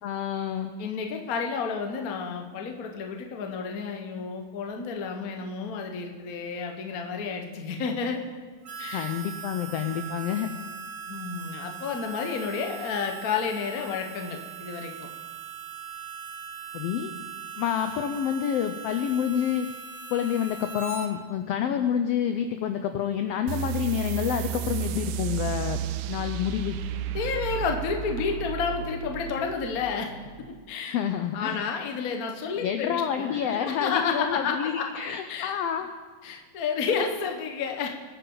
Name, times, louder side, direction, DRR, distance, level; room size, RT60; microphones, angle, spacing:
voice 1, 0.0-0.7 8.9-10.5 16.7-17.1 17.6-19.7 20.1-25.8 26.1-26.8 30.9-31.6 32.6-35.9, left 9 dB, 80° left, 7 dB, 1.4 m, -28 dB
voice 2, 0.8-8.2 8.8-9.1 11.1-15.1 27.1-30.1 30.7-31.0 31.3-34.9 35.3-35.5 36.2-37.9, left 5 dB, 65° left, 3 dB, 0.8 m, -31 dB
Harmonica, 8.6-21.1, right 7 dB, 65° right, 0.9 m, -40 dB
sound 1, 23.5-30.6, right 10 dB, 85° right, 2.1 m, -33 dB
22.5 x 9.3 x 3.9 m, 1.5 s
omnidirectional pair, 3.5 m